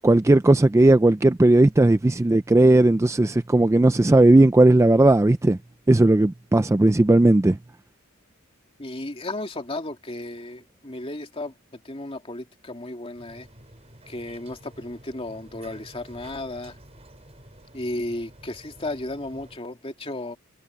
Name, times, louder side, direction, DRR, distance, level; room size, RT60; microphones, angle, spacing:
voice 1, 0.0-5.6 5.9-7.6, right 2 dB, 15° right, 0.3 m, -16 dB
voice 2, 8.8-13.5 14.1-16.8 17.7-20.4, left 2 dB, 25° left, 2.5 m, -34 dB
sound 1, 13.2-19.6, right 1 dB, 30° right, 7.7 m, -49 dB
head